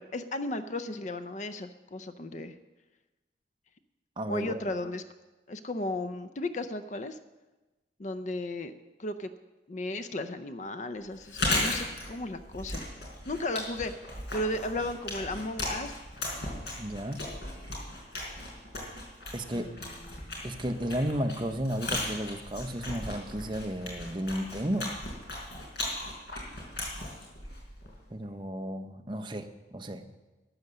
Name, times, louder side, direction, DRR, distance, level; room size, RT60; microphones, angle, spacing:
voice 1, 0.0-2.5 4.3-5.0 5.5-7.2 8.0-8.7 9.0-9.3 9.7-12.9 13.3-14.1 14.3-16.0 19.5-20.4, left 1 dB, 40° left, 11 dB, 0.5 m, -35 dB
voice 2, 4.2-4.6 16.8-17.2 19.3-19.7 20.4-24.9 28.1-30.0, equal, 25° right, 6 dB, 0.7 m, -33 dB
Chewing mastication, 11.2-28.0, left 2 dB, 65° left, 4.0 m, -36 dB
13.0 x 9.4 x 6.7 m, 1.1 s
head